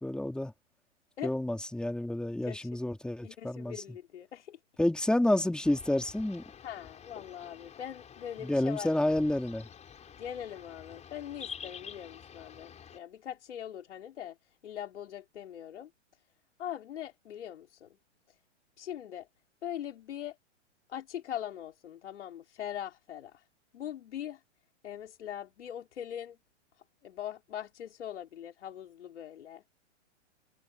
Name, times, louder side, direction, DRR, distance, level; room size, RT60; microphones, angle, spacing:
voice 1, 0.0-0.5 1.2-3.8 4.8-6.4 8.4-9.7, left 1 dB, ahead, 3.1 m, -29 dB
voice 2, 3.2-4.6 6.6-8.9 10.2-14.3 14.6-15.9 16.6-17.9 18.8-19.3 19.6-20.4 20.9-23.4 23.7-24.4 24.8-26.4 27.0-29.6, left 10 dB, 70° left, 4.8 m, -41 dB
sound 1, 5.6-13.0, left 7 dB, 20° left, 5.3 m, -49 dB
hypercardioid pair, 120°, 36 cm